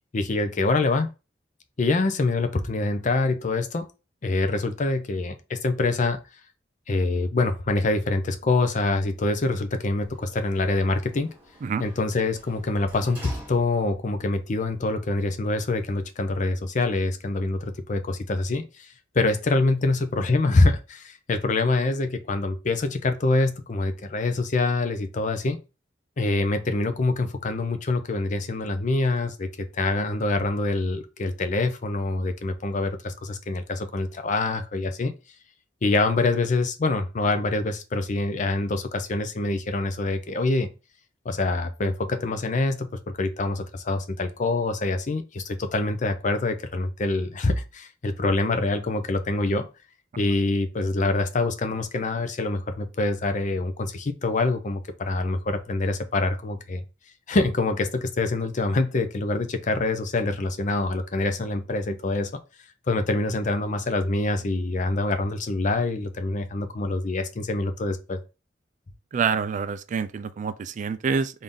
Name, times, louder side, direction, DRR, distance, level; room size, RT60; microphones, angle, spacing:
voice 1, 0.1-1.1 1.8-3.8 4.2-6.2 6.9-11.3 11.8-18.9 19.1-25.6 26.2-35.1 35.8-40.7 41.2-42.9 43.2-49.7 50.2-56.8 57.3-62.3 62.9-68.2, left 2 dB, 45° left, 0.5 m, -25 dB
Sliding door, 10.0-14.1 14.6-14.7, equal, 10° right, 1.9 m, -48 dB
voice 2, 69.1-71.4, right 6 dB, 45° right, 0.3 m, -27 dB
3.7 x 2.6 x 3.4 m
head